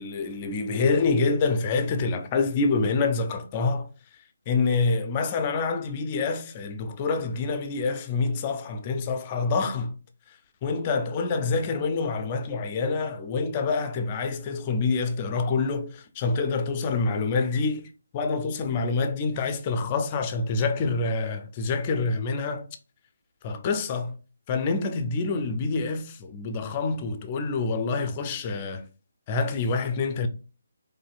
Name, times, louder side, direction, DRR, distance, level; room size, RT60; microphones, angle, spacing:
voice 1, 0.0-3.9 4.5-10.0 10.6-17.9 18.1-22.7 23.4-24.2 24.5-28.8 29.3-30.3, left 4 dB, 30° left, 0.5 m, -26 dB
4.0 x 2.6 x 2.4 m
figure-of-eight pair, 150°, 0 cm